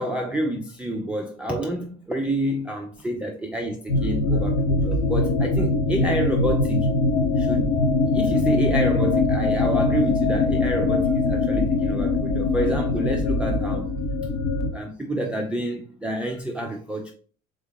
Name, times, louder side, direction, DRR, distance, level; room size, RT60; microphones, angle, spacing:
voice 1, 0.0-6.9 7.4-7.7 8.1-13.9 14.7-17.1, right 1 dB, 5° right, 0.5 m, -28 dB
sound 1, 3.9-14.7, left 3 dB, 45° left, 0.9 m, -22 dB
3.6 x 3.5 x 3.7 m
figure-of-eight pair, 60°, 39 cm